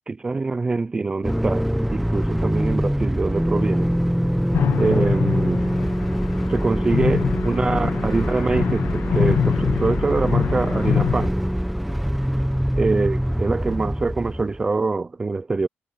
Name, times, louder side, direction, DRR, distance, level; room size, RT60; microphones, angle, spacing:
voice 1, 0.1-3.9 4.8-5.6 6.5-11.3 12.8-15.7, right 3 dB, 20° right, 0.5 m, -24 dB
sound 1, 1.2-14.7, equal, ahead, 0.9 m, -24 dB
sound 2, 4.5-11.3, left 8 dB, 60° left, 1.1 m, -25 dB
wide cardioid pair, 180°, 4 cm